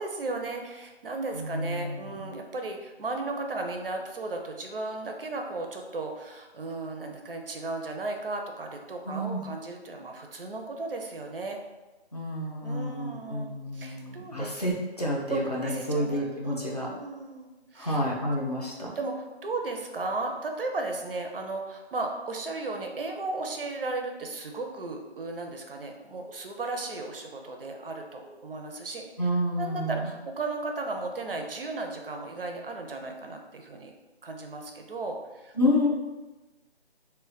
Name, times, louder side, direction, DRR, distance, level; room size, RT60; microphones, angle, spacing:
voice 1, 0.0-11.6 12.6-14.6 15.3-18.0 19.0-29.1 29.6-33.9 34.2-35.5, right 3 dB, 60° right, 3 dB, 0.4 m, -35 dB
voice 2, 1.3-2.3 9.1-9.4 12.1-16.9 17.8-18.9 29.2-30.1 35.6-35.9, left 1 dB, 40° left, -4 dB, 0.4 m, -29 dB
2.2 x 2.1 x 3.8 m, 1.1 s
figure-of-eight pair, 170°, 32 cm